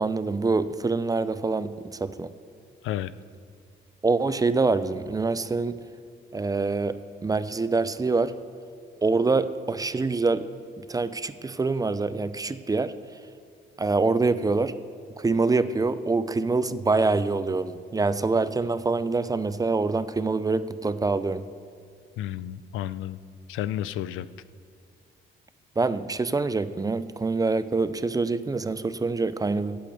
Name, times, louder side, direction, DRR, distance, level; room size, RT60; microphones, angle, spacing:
voice 1, 0.0-2.3 4.0-5.8 6.3-8.3 9.0-10.5 10.8-12.9 13.8-14.7 15.2-21.5 25.8-29.8, right 3 dB, 20° right, 14 dB, 0.4 m, -25 dB
voice 2, 22.2-23.2 23.5-24.3, left 12 dB, 90° left, 16 dB, 0.4 m, -31 dB
8.6 x 8.5 x 7.9 m, 2.3 s
cardioid pair, 90°, 20 cm